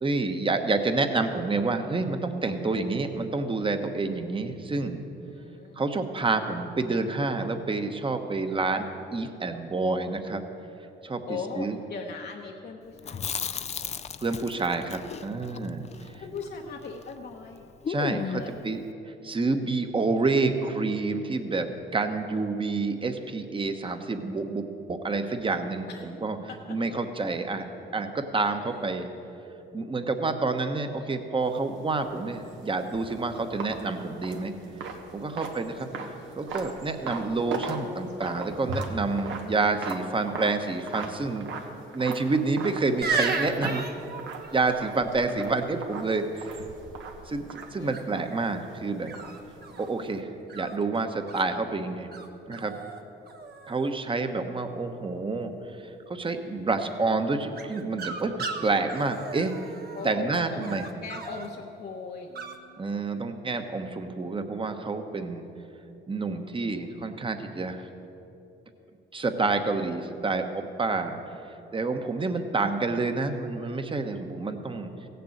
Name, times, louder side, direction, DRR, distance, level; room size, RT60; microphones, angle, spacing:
voice 1, 0.0-5.0 5.8-10.4 11.0-11.2 11.6-11.8 14.2-15.8 17.9-18.8 19.2-26.4 26.7-27.6 27.9-29.1 29.7-34.5 35.1-35.9 36.4-41.5 41.9-43.8 44.5-46.6 47.3-49.1 49.8-52.1 52.5-52.7 53.7-55.5 55.8-59.5 60.0-60.8 62.8-65.4 66.1-67.9 69.1-71.2 71.7-74.9, right 3 dB, 25° right, 7 dB, 1.1 m, -28 dB
voice 2, 5.2-5.8 11.3-13.5 16.2-17.7 18.3-18.5 25.9-26.1 26.5-26.6 28.7-28.8 35.2-36.4 47.8-48.6 59.9-63.0, left 4 dB, 55° left, 1 dB, 1.0 m, -40 dB
Chewing mastication, 13.0-17.2 17.4-17.5 17.8-18.6, left 7 dB, 35° left, 0.4 m, -35 dB
sound 1, 31.4-50.2, right 4 dB, 75° right, 1.4 m, -40 dB
sound 2, 43.0-44.8 47.9-48.3 49.1-49.9 50.5-51.4 52.1-52.3 52.5-53.0 53.3-53.9 57.6-60.1 60.6-61.5 62.4-62.6, right 4 dB, 50° right, 1.2 m, -34 dB
16.5 x 6.8 x 7.9 m, 2.9 s
cardioid pair, 90°, 20 cm